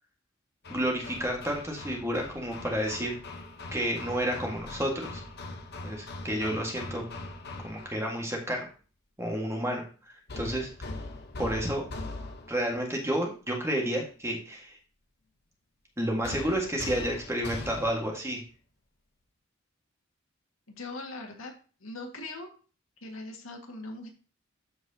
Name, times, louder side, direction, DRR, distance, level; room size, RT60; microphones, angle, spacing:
Hammer, 0.6-8.1 10.3-12.7 16.2-18.2, left 2 dB, 50° left, 1.0 m, -41 dB
voice 1, 0.7-3.2 3.7-5.2 5.8-7.0 7.6-8.6 9.2-10.7 11.4-11.8 12.5-14.8 16.0-18.4, equal, 15° right, 0 dB, 1.7 m, -30 dB
voice 2, 20.8-21.5 21.8-22.5 23.0-24.1, left 2 dB, 80° left, 2 dB, 1.9 m, -40 dB
13.5 x 4.7 x 2.8 m, 0.37 s
head